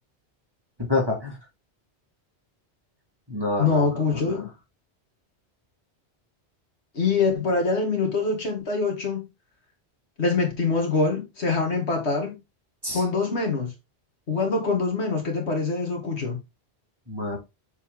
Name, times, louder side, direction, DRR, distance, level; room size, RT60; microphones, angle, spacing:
voice 1, 0.9-1.4 3.3-4.4 12.8-13.0 17.1-17.4, left 2 dB, 20° right, 2.3 m, -28 dB
voice 2, 3.6-4.5 6.9-9.3 10.2-12.4 12.9-13.7 14.3-16.4, left 4 dB, 75° left, 2.2 m, -24 dB
7.1 x 4.1 x 3.6 m
omnidirectional pair, 1.1 m